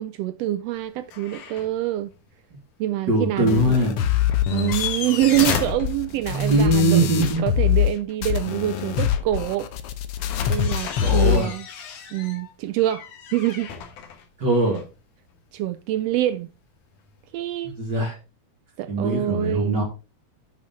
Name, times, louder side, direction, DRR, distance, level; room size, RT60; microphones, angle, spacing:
voice 1, 0.0-2.1 2.8-3.8 4.5-9.7 10.5-11.6 12.1-13.7 15.5-16.5 17.3-17.7 18.8-19.8, right 13 dB, 85° right, 1.4 m, -25 dB
sound 1, 1.1-1.7 2.1-2.2 4.3-6.6 10.2-15.0 17.1-17.2, left 7 dB, 85° left, 2.9 m, -33 dB
voice 2, 3.1-4.0 6.3-7.4 11.0-11.5 14.4-14.8 17.6-18.1 18.9-19.8, right 1 dB, 40° right, 2.4 m, -21 dB
sound 2, 3.5-7.9 8.2-11.5, left 11 dB, 70° left, 1.5 m, -24 dB
10.0 x 6.3 x 3.6 m
omnidirectional pair, 3.4 m